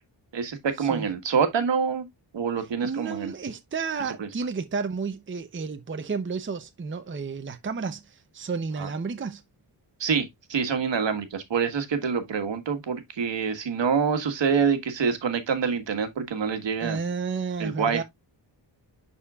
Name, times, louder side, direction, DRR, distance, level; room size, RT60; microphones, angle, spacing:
voice 1, 0.3-2.0 2.3-3.3 4.2-4.3 8.8-8.9 10.0-17.0 17.6-18.0, right 6 dB, 70° right, 1.6 m, -26 dB
voice 2, 2.6-9.4 16.8-18.0, right 5 dB, 25° right, 0.7 m, -32 dB
11.0 x 4.3 x 2.4 m
wide cardioid pair, 135°, 46 cm